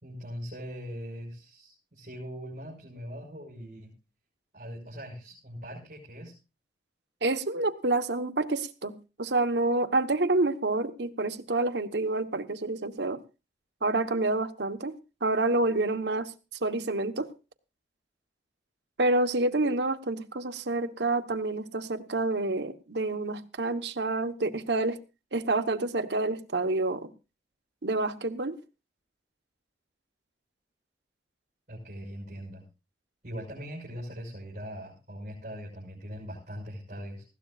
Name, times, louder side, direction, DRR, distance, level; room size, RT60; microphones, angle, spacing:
voice 1, 0.0-3.9 4.5-6.3 31.7-32.6 33.2-37.2, equal, 45° right, 6.0 m, -41 dB
voice 2, 7.2-13.2 13.8-16.3 16.6-17.3 19.0-25.0 25.3-27.1 27.8-28.6, right 2 dB, 85° right, 1.2 m, -28 dB
20.0 x 16.0 x 2.5 m
head